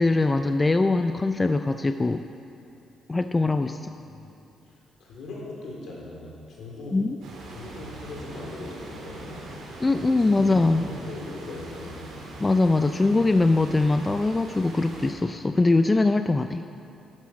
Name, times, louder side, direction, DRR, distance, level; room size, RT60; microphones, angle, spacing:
voice 1, 0.0-2.3 3.1-4.0 6.9-7.2 9.8-10.9 12.4-16.6, left 2 dB, 20° left, 9 dB, 0.4 m, -22 dB
voice 2, 4.0-4.4 4.7-7.0 7.5-9.4 10.1-12.1, left 2 dB, 70° left, -3 dB, 3.5 m, -40 dB
sound 1, 7.2-15.1, right 2 dB, 80° right, 3.0 m, -42 dB
11.5 x 9.9 x 6.3 m, 2.9 s
cardioid pair, 90°, 0 cm